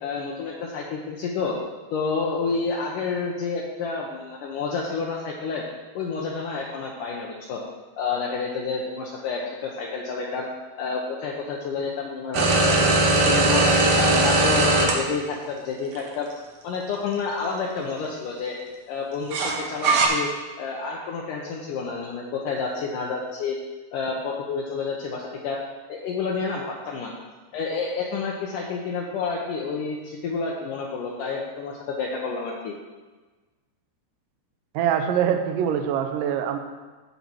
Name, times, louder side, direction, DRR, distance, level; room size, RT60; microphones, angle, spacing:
voice 1, 0.0-1.6 1.9-5.7 5.9-7.6 8.0-10.5 10.8-12.8 13.1-13.7 13.9-16.3 16.6-18.6 18.9-20.3 20.6-23.6 23.9-25.6 25.9-27.1 27.5-32.8, left 4 dB, 80° left, -2 dB, 1.9 m, -29 dB
sound 1, 12.3-14.9 16.0-16.1 19.3-20.1, right 2 dB, 60° right, 2.4 m, -19 dB
voice 2, 34.7-36.6, right 9 dB, 85° right, 5 dB, 1.9 m, -24 dB
15.5 x 5.5 x 4.5 m, 1.3 s
omnidirectional pair, 5.0 m